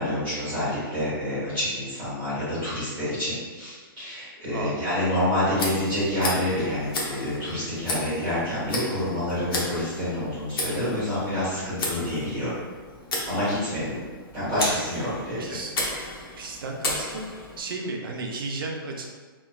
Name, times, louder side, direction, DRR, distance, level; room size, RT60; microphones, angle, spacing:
voice 1, 0.0-12.6 13.2-14.0 14.3-15.5, left 1 dB, 15° right, -13 dB, 1.1 m, -28 dB
Tick, 5.5-17.6, left 2 dB, 75° left, 0.8 m, -34 dB
voice 2, 14.5-14.8 15.4-15.8 16.4-17.3 17.6-19.1, right 3 dB, 70° right, 2 dB, 0.5 m, -34 dB
3.0 x 2.2 x 2.2 m, 1.4 s
hypercardioid pair, 170°, 12 cm